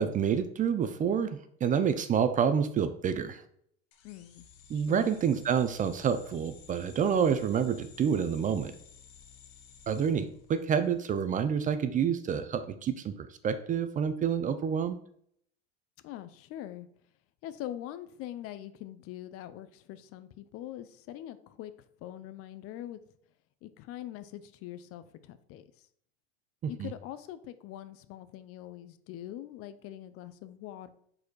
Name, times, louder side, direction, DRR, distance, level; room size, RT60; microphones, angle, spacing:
voice 1, 0.0-3.4 4.7-8.7 9.9-15.0 26.6-26.9, right 7 dB, 25° right, 11 dB, 0.4 m, -28 dB
sound 1, 3.9-11.0, left 7 dB, 80° left, 1.2 m, -54 dB
voice 2, 4.0-4.5 4.7-5.1 16.0-16.9 17.4-21.7 22.0-23.0 23.6-25.6 26.7-30.9, left 12 dB, 50° left, 13 dB, 0.6 m, -43 dB
4.9 x 4.2 x 4.6 m, 0.66 s
supercardioid pair, 110°, 31 cm